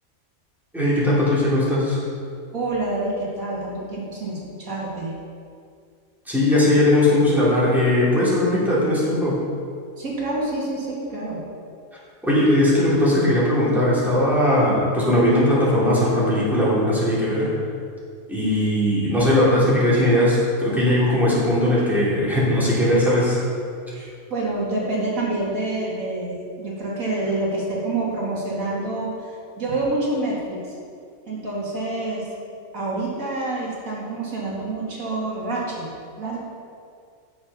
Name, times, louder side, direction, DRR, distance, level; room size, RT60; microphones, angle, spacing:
voice 1, 0.7-2.0 6.3-9.4 12.2-17.5 18.3-23.4, left 1 dB, ahead, -9 dB, 3.0 m, -19 dB
voice 2, 2.5-5.1 10.0-11.4 23.9-29.1 29.6-30.6 31.3-32.3 32.7-35.9 36.2-36.4, right 2 dB, 70° right, -5 dB, 2.5 m, -27 dB
10.5 x 7.1 x 5.5 m, 2.2 s
omnidirectional pair, 1.5 m